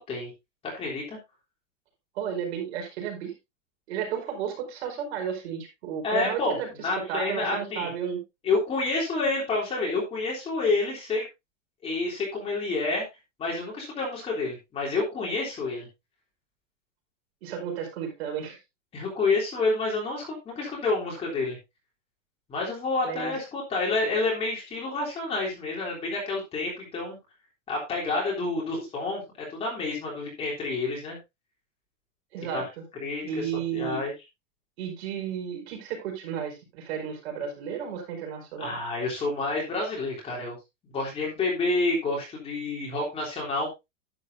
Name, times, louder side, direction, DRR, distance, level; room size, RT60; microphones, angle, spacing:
voice 1, 0.6-1.2 6.0-7.9 8.4-11.2 11.8-13.1 13.4-15.9 18.9-21.6 22.5-27.2 27.7-31.2 32.5-32.6 33.0-33.4 33.7-34.1 38.6-40.5 40.9-43.7, left 3 dB, 15° left, -3 dB, 3.5 m, -29 dB
voice 2, 2.1-3.3 3.9-8.2 17.4-18.6 23.0-23.4 32.3-32.8 33.2-34.0 34.8-38.8, right 8 dB, 55° right, 2 dB, 4.9 m, -33 dB
11.5 x 9.7 x 2.7 m, 0.23 s
supercardioid pair, 175°, 37 cm